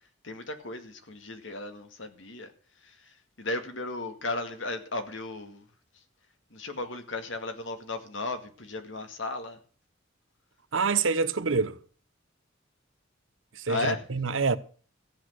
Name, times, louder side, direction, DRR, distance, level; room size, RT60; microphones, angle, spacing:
voice 1, 0.2-2.5 2.8-5.6 6.5-9.6 13.7-14.0, left 2 dB, 70° left, 2.1 m, -35 dB
voice 2, 10.7-11.8 13.5-14.6, right 4 dB, 75° right, 0.9 m, -26 dB
15.0 x 8.1 x 6.4 m
head